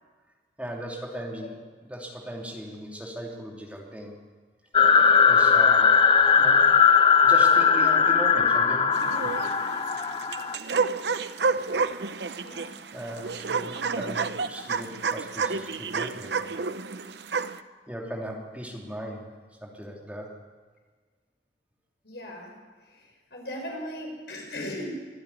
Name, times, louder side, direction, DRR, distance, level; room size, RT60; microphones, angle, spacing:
voice 1, 0.6-1.6 1.8-4.1 5.2-5.9 6.4-6.6 7.2-9.3 12.9-16.3 17.9-19.2 19.6-20.3, equal, 10° right, -1 dB, 2.9 m, -38 dB
sound 1, 4.7-10.5, left 6 dB, 25° left, 0.8 m, -19 dB
sound 2, 8.9-17.6, right 4 dB, 75° right, 0.8 m, -30 dB
voice 2, 12.4-12.7 22.0-22.6 22.9-24.9, left 1 dB, 70° left, 0 dB, 6.4 m, -38 dB
24.0 x 11.5 x 9.7 m, 1.4 s
head